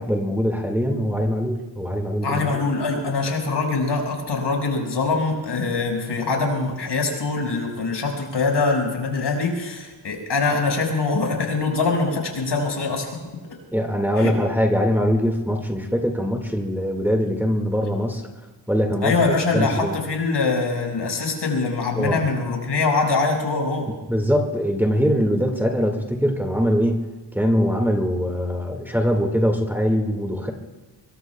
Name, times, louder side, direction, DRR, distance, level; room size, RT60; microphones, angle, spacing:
voice 1, 0.0-2.6 13.7-18.2 18.7-19.1 19.5-20.0 22.0-22.2 24.1-30.5, equal, 5° right, 2 dB, 1.9 m, -22 dB
voice 2, 2.2-13.1 14.2-14.3 19.0-23.9, left 3 dB, 70° left, 1 dB, 5.5 m, -23 dB
26.5 x 23.0 x 2.3 m, 1.3 s
wide cardioid pair, 130°, 43 cm